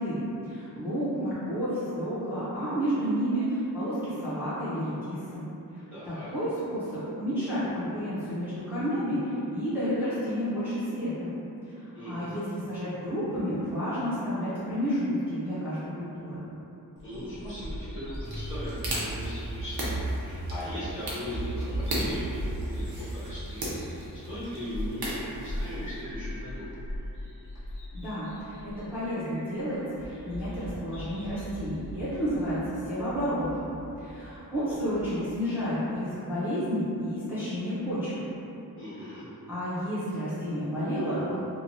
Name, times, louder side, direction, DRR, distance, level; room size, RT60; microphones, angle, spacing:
voice 1, 0.0-5.5 5.7-11.3 11.6-16.4 27.9-33.7 34.0-38.1 39.5-41.4, equal, 5° right, -14 dB, 0.5 m, -31 dB
voice 2, 5.9-6.3 11.9-12.3 17.0-23.7 24.1-26.7 34.6-34.7 38.8-39.3, equal, 35° left, -12 dB, 1.1 m, -38 dB
Bird vocalization bird call bird song, 17.0-35.1, right 1 dB, 55° left, 0.5 m, -38 dB
sound 1, 18.2-26.0, right 1 dB, 75° right, 0.7 m, -37 dB
2.9 x 2.2 x 2.6 m, 2.9 s
wide cardioid pair, 135°, 37 cm